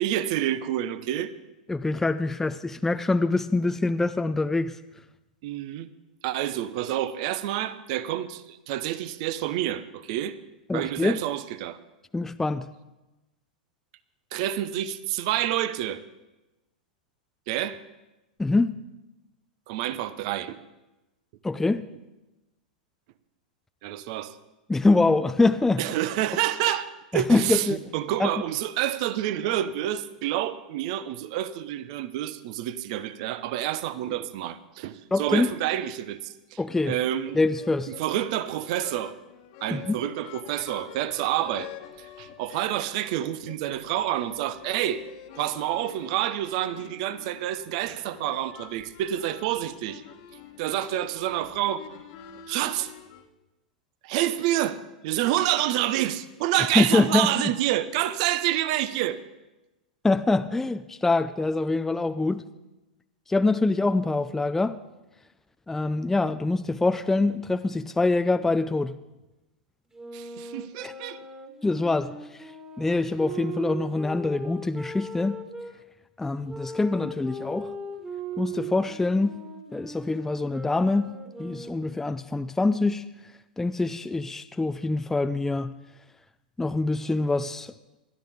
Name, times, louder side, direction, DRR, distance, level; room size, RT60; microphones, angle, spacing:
voice 1, 0.0-1.3 5.4-5.9 6.2-10.4 10.7-11.8 14.3-16.0 17.5-17.8 19.7-20.6 23.8-24.4 25.8-36.6 36.8-37.4 38.0-39.1 39.6-41.7 42.0-45.0 45.3-50.0 50.6-51.8 52.5-52.9 54.0-59.2 70.1-71.2, right 12 dB, 55° right, 0.9 m, -28 dB
voice 2, 1.7-4.7 10.7-11.2 12.1-12.6 18.4-18.8 21.4-21.9 24.7-25.8 27.1-27.8 28.2-28.3 35.1-35.5 36.6-37.0 37.3-37.9 39.7-40.0 56.8-57.3 60.0-62.4 63.3-64.8 65.7-68.9 70.8-70.9 71.6-72.1 72.4-72.5 72.8-75.4 76.2-77.7 78.4-79.4 79.7-83.1 83.6-85.7 86.6-87.7, left 3 dB, 10° left, 0.5 m, -24 dB
sound 1, 36.6-53.3, left 9 dB, 55° left, 1.5 m, -47 dB
sound 2, 69.9-75.7 76.5-82.1, right 2 dB, 15° right, 2.0 m, -39 dB
21.0 x 13.0 x 3.6 m
hypercardioid pair, 100°, 4 cm